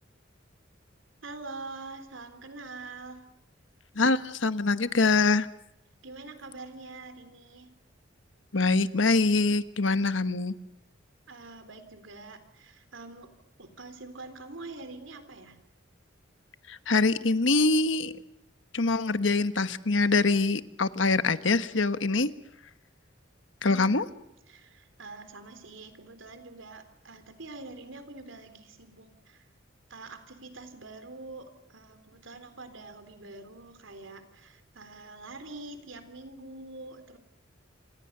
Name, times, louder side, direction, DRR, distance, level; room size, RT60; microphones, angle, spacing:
voice 1, 1.2-3.3 6.0-7.7 11.3-15.6 23.6-24.1 24.5-29.5 29.9-37.2, right 3 dB, 75° right, 9 dB, 3.7 m, -45 dB
voice 2, 3.9-5.5 8.5-10.5 16.7-18.1 18.7-22.3 23.6-24.0, left 3 dB, 70° left, 11 dB, 1.2 m, -24 dB
28.0 x 26.0 x 6.8 m, 0.83 s
head